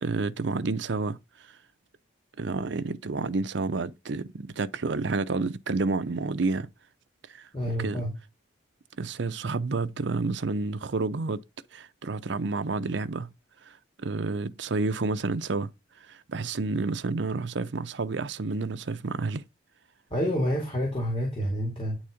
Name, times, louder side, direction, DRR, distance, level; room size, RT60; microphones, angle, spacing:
voice 1, 0.0-1.2 1.5-1.6 2.4-6.7 7.3-7.5 7.8-8.0 9.0-11.4 11.7-13.3 13.6-15.7 16.1-19.4, right 3 dB, 65° right, 0.6 m, -30 dB
voice 2, 7.5-8.1 20.1-22.0, equal, 30° left, 2.3 m, -28 dB
9.5 x 4.1 x 5.0 m
head